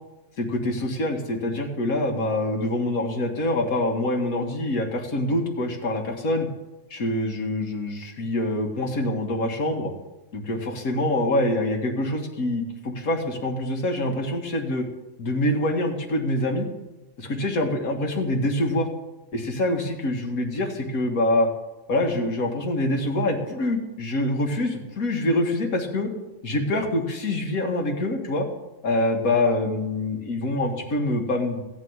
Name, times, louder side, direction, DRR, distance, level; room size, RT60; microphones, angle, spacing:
voice 1, 0.4-6.5 6.9-9.9 10.3-14.8 15.2-16.7 17.2-18.9 19.3-21.5 21.9-26.1 26.4-28.5 28.8-31.6, left 1 dB, 85° left, 1 dB, 1.9 m, -25 dB
15.0 x 5.1 x 9.4 m, 1.1 s
omnidirectional pair, 1.4 m